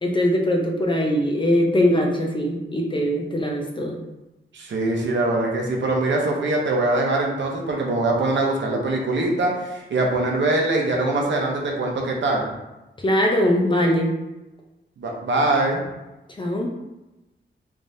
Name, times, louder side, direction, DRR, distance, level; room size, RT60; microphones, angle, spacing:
voice 1, 0.0-4.0 13.0-14.1 16.4-16.7, equal, 25° left, 0 dB, 0.6 m, -21 dB
voice 2, 4.5-12.4 15.0-15.9, right 2 dB, 70° right, -1 dB, 0.8 m, -23 dB
3.4 x 3.4 x 2.7 m, 1.0 s
wide cardioid pair, 120°, 20 cm